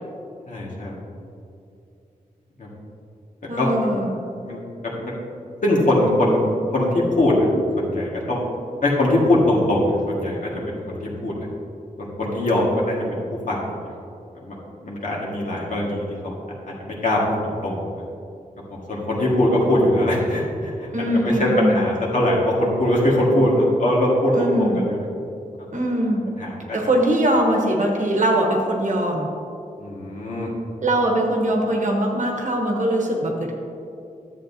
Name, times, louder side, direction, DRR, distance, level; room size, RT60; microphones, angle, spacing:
voice 1, 0.5-1.0 2.6-2.7 3.6-3.9 4.4-4.6 4.8-5.1 5.6-6.4 6.7-7.4 7.8-8.4 8.8-11.5 12.0-14.0 14.3-14.6 14.8-16.3 16.7-17.8 18.9-20.9 21.2-25.1 26.4-26.8 29.8-30.5, left 1 dB, 60° left, -4 dB, 1.8 m, -21 dB
voice 2, 3.5-4.1 20.9-21.9 24.4-24.8 25.7-26.3 26.7-29.3 30.8-33.5, right 1 dB, 55° right, 0 dB, 1.1 m, -21 dB
11.5 x 7.7 x 2.8 m, 2.6 s
wide cardioid pair, 130°, 15 cm